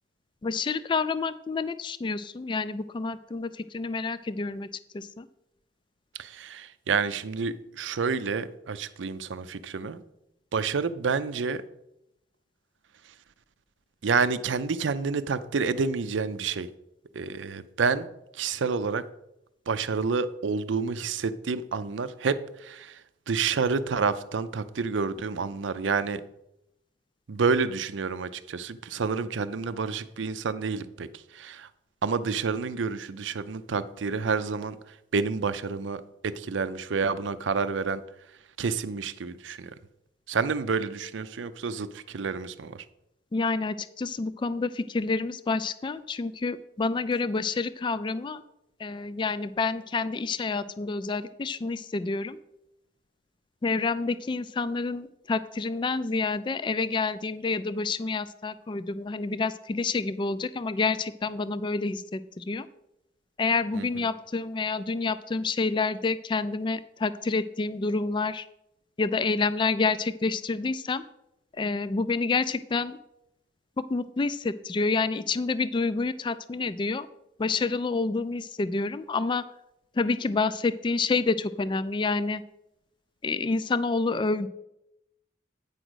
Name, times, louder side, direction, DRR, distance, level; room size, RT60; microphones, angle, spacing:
voice 1, 0.4-4.7 4.9-5.3 43.3-48.4 48.8-52.4 53.6-62.7 63.4-68.5 69.0-71.0 71.6-73.0 73.8-77.1 77.4-79.4 80.0-82.4 83.2-84.5, left 4 dB, 25° left, 14 dB, 0.3 m, -28 dB
voice 2, 6.2-10.0 10.5-11.6 13.0-13.1 14.0-16.7 17.1-18.1 18.3-19.0 19.7-23.0 23.3-26.2 27.3-31.7 32.0-38.0 38.6-39.7 40.3-42.8 63.7-64.1, right 5 dB, 85° right, 13 dB, 0.5 m, -29 dB
9.0 x 5.0 x 6.2 m, 0.85 s
head